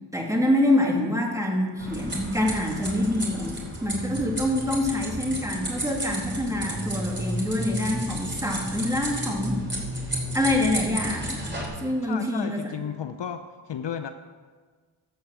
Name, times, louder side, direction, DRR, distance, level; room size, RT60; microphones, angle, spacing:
voice 1, 0.1-9.6 10.3-11.5 11.8-12.7, left 1 dB, 5° right, -1 dB, 2.4 m, -26 dB
sound 1, 1.8-11.7, right 1 dB, 20° right, 3.0 m, -32 dB
voice 2, 12.0-14.1, left 8 dB, 60° left, 8 dB, 0.6 m, -33 dB
12.5 x 4.7 x 7.5 m, 1.5 s
cardioid pair, 60°, 49 cm